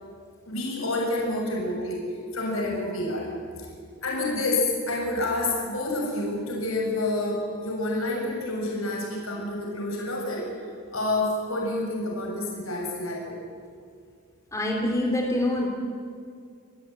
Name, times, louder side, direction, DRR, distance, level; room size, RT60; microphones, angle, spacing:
voice 1, 0.5-2.0 2.3-3.3 4.0-10.5 10.9-13.3, left 2 dB, 70° left, -1 dB, 7.3 m, -28 dB
voice 2, 14.5-15.7, left 1 dB, 15° left, 0 dB, 3.7 m, -25 dB
27.5 x 19.0 x 9.7 m, 2.2 s
head